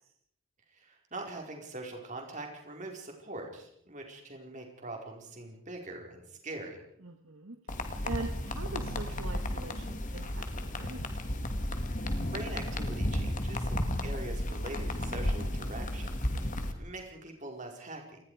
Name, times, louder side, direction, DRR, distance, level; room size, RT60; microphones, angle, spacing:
voice 1, 0.7-6.8 11.8-18.2, right 2 dB, 35° right, 2 dB, 4.9 m, -43 dB
voice 2, 7.0-7.6 8.0-11.1 16.4-16.8, right 3 dB, 75° right, 5 dB, 1.8 m, -42 dB
sound 1, 7.7-16.7, left 1 dB, 35° left, 2.3 m, -33 dB
27.5 x 20.5 x 5.0 m, 0.70 s
head